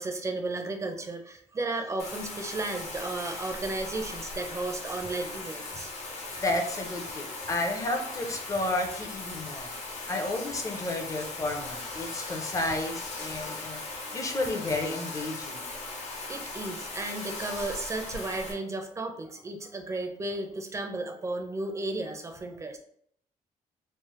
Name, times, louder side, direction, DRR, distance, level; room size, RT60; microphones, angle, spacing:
voice 1, 0.0-5.9 16.3-22.8, right 2 dB, 20° right, 4 dB, 0.5 m, -34 dB
Bathtub (filling or washing), 2.0-18.5, left 3 dB, 50° left, 0.9 m, -38 dB
voice 2, 6.4-9.7 10.1-13.8 14.1-15.7, left 2 dB, 25° left, 2 dB, 0.6 m, -32 dB
3.2 x 2.0 x 3.0 m, 0.65 s
cardioid pair, 120°, 14 cm